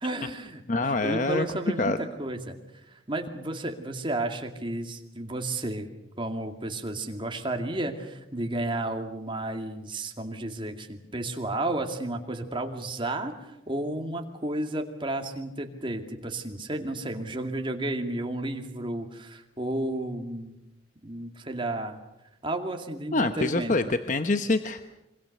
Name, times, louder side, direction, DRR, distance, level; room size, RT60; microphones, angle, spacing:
voice 1, 0.0-1.9 2.2-2.6 2.9-5.9 6.2-20.5 21.0-22.0 22.4-23.7, right 1 dB, 25° right, 4 dB, 2.3 m, -32 dB
voice 2, 0.7-1.4 1.8-2.0 23.1-24.8, left 2 dB, 40° left, 9 dB, 0.9 m, -25 dB
26.0 x 25.0 x 6.7 m, 0.92 s
head